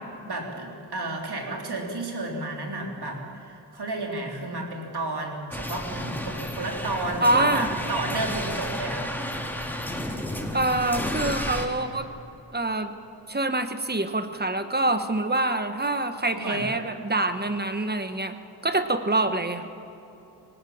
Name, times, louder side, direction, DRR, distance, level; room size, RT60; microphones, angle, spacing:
voice 1, 0.3-9.1 16.3-16.8, right 2 dB, 65° right, 1 dB, 3.7 m, -32 dB
sound 1, 5.5-11.7, left 1 dB, 5° left, 2.4 m, -32 dB
voice 2, 7.2-7.7 10.5-12.1 12.5-12.9 13.3-18.3 18.6-19.7, right 2 dB, 25° right, 9 dB, 1.3 m, -25 dB
20.0 x 18.5 x 8.7 m, 3.0 s
wide cardioid pair, 90°, 42 cm